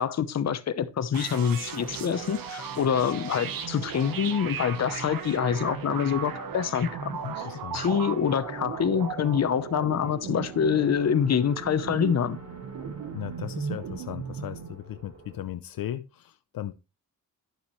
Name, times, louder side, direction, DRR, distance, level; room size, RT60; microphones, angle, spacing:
voice 1, 0.0-12.4, left 8 dB, 50° left, 0.9 m, -26 dB
sound 1, 1.1-14.7, right 7 dB, 75° right, 1.3 m, -36 dB
sound 2, 1.4-15.5, right 2 dB, 55° right, 5.4 m, -49 dB
voice 2, 7.2-7.8 13.1-16.7, left 12 dB, 75° left, 0.7 m, -37 dB
11.0 x 7.2 x 3.2 m
cardioid pair, 110°, 35 cm